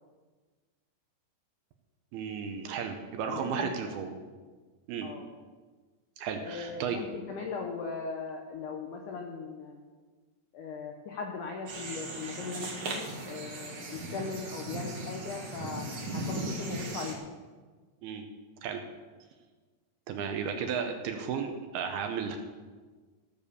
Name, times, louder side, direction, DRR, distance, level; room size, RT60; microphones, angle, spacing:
voice 1, 2.1-4.1 4.9-5.1 6.2-7.0 18.0-18.3 18.6-18.8 20.1-22.4, right 7 dB, 80° right, 5 dB, 2.5 m, -34 dB
voice 2, 3.3-3.7 5.0-5.3 6.4-9.8 10.5-17.2, left 4 dB, 80° left, 2 dB, 1.8 m, -39 dB
sound 1, 11.7-17.1, right 2 dB, 50° right, 1.6 m, -37 dB
16.0 x 6.9 x 6.8 m, 1.4 s
omnidirectional pair, 5.1 m